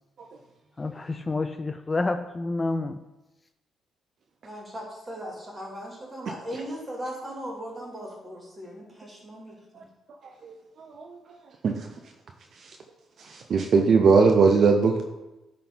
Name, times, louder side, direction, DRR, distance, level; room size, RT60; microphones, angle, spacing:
voice 1, 0.8-3.0, left 3 dB, 25° left, 8 dB, 0.4 m, -28 dB
voice 2, 4.4-9.8, equal, 25° right, -2 dB, 2.6 m, -38 dB
voice 3, 10.4-11.2 11.6-11.9 13.2-15.0, right 4 dB, 55° right, 3 dB, 0.6 m, -20 dB
10.0 x 3.8 x 3.9 m, 1.0 s
cardioid pair, 90°, 0 cm